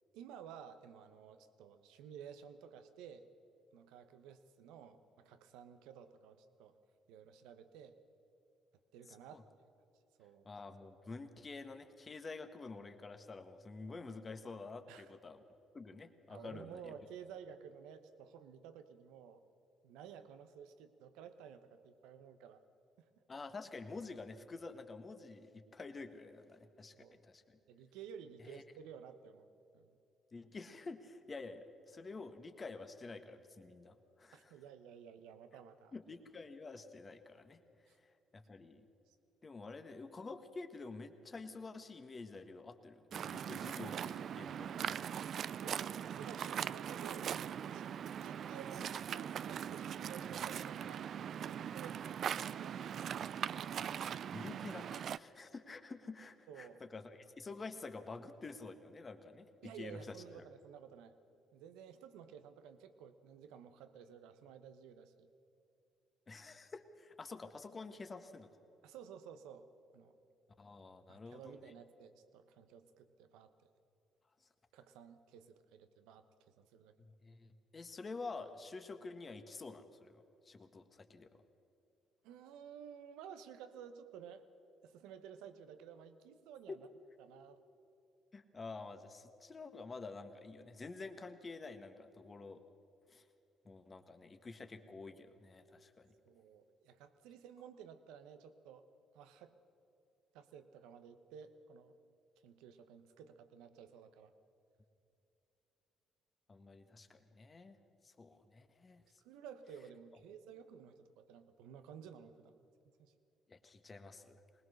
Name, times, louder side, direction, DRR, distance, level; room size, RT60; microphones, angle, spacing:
voice 1, 0.1-3.3 3.7-6.8 7.1-8.0 8.9-9.5 10.2-10.5 14.9-15.1 16.3-19.4 19.8-22.6 26.9-27.2 27.7-29.5 29.7-29.9 34.3-35.9 37.9-38.0 39.1-39.2 45.5-47.9 48.2-52.0 52.4-53.3 56.5-56.8 59.6-61.2 61.5-65.3 68.8-69.7 69.9-70.2 71.1-73.5 74.7-76.3 76.6-76.9 82.2-84.4 84.8-86.9 87.2-87.6 96.2-98.8 99.1-99.6 100.3-101.9 102.4-104.3 109.2-112.5 113.0-113.1, right 8 dB, 80° right, 10 dB, 1.0 m, -54 dB
voice 2, 10.4-15.4 15.7-16.9 23.3-27.6 28.4-28.6 30.3-34.5 35.9-37.6 38.3-38.8 39.4-45.0 54.3-60.4 66.3-68.5 70.6-71.7 77.0-81.3 86.7-86.8 88.3-92.6 93.1-93.2 93.6-96.1 106.5-107.8 108.0-109.0 113.5-114.4, left 3 dB, 35° left, 8 dB, 1.6 m, -49 dB
Waves surf, 43.1-55.2, right 9 dB, 60° right, 0.4 m, -41 dB
21.5 x 19.5 x 6.5 m, 2.7 s
hypercardioid pair, 55°, 0 cm